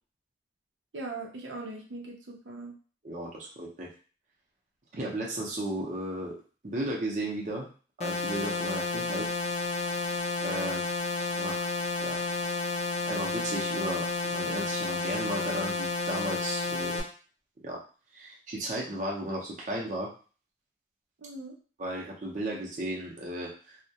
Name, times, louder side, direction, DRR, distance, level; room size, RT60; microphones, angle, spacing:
voice 1, 0.9-2.7 21.2-21.6, right 2 dB, 90° right, 0 dB, 0.6 m, -40 dB
voice 2, 3.0-3.9 4.9-6.4 6.6-7.7 8.0-9.3 10.4-10.8 11.2-11.7 12.0-12.2 13.1-17.0 17.6-17.8 18.1-20.1 21.8-23.8, right 1 dB, 45° right, -3 dB, 0.5 m, -35 dB
sound 1, 8.0-17.0, left 3 dB, 35° left, 0.4 m, -31 dB
2.2 x 2.1 x 2.7 m, 0.38 s
head